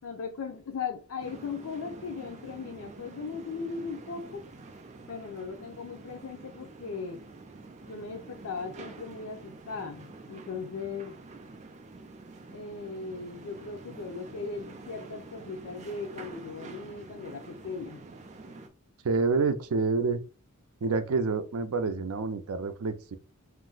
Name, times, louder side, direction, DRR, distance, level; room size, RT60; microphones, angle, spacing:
voice 1, 0.0-4.5 5.1-7.3 7.9-11.2 12.5-18.0, left 4 dB, 85° left, 0.5 m, -38 dB
sound 1, 1.2-18.7, right 3 dB, 30° right, 0.4 m, -47 dB
voice 2, 19.0-20.2 20.8-23.2, right 4 dB, 90° right, 0.5 m, -28 dB
2.5 x 2.1 x 3.8 m
head